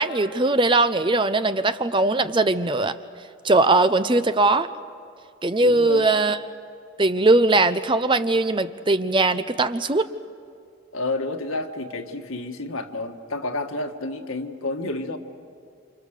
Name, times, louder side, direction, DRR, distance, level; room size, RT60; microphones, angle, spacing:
voice 1, 0.0-2.9 3.4-4.7 5.4-6.4 7.0-10.1, right 2 dB, 25° right, 11 dB, 0.6 m, -20 dB
voice 2, 5.6-6.1 10.9-15.2, left 2 dB, 90° left, 4 dB, 1.7 m, -30 dB
29.5 x 27.0 x 6.6 m, 2.4 s
head